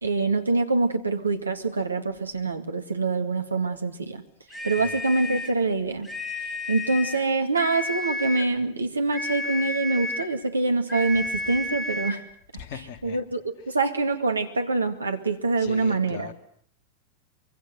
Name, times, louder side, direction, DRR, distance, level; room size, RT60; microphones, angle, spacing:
voice 1, 0.0-4.2 4.6-6.1 6.7-12.2 13.0-16.3, right 3 dB, 80° right, 2.3 m, -25 dB
sound 1, 4.5-5.6 6.0-7.3 7.5-8.5 9.1-10.3 10.9-12.2, left 1 dB, 10° left, 3.0 m, -32 dB
voice 2, 12.5-13.2 13.7-13.8 15.6-16.3, left 7 dB, 45° left, 2.4 m, -39 dB
24.5 x 23.5 x 8.0 m
figure-of-eight pair, 90°, 0 cm